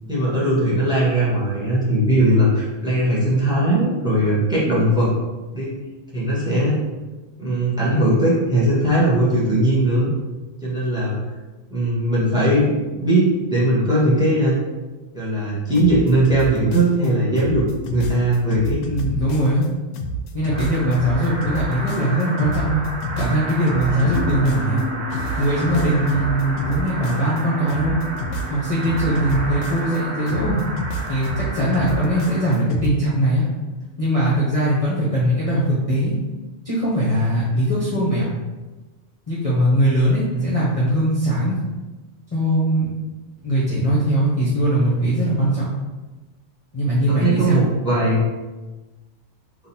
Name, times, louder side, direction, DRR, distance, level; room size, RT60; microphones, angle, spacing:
voice 1, 0.1-5.1 5.5-5.8 6.1-6.8 7.4-10.1 10.6-11.3 11.7-14.5 15.1-18.8 23.9-24.1 40.3-40.5 47.1-48.2, right 1 dB, 5° right, -6 dB, 1.3 m, -19 dB
sound 1, 15.7-17.1 17.4-19.7 19.9-24.8 25.1-27.4 27.7-30.0 30.3-32.9, right 1 dB, 75° left, 0.9 m, -29 dB
voice 2, 18.9-19.6 20.3-22.8 23.2-24.8 25.4-28.0 28.5-30.6 31.1-33.4 34.0-36.1 36.6-38.2 39.3-41.6 42.3-42.9 43.4-45.6 46.7-47.6, right 1 dB, 30° left, -7 dB, 0.9 m, -20 dB
sound 2, 20.5-32.5, right 2 dB, 20° right, 1.2 m, -32 dB
sound 3, 24.1-30.6, left 1 dB, 35° right, 0.3 m, -35 dB
3.8 x 2.9 x 4.2 m, 1.2 s
omnidirectional pair, 1.4 m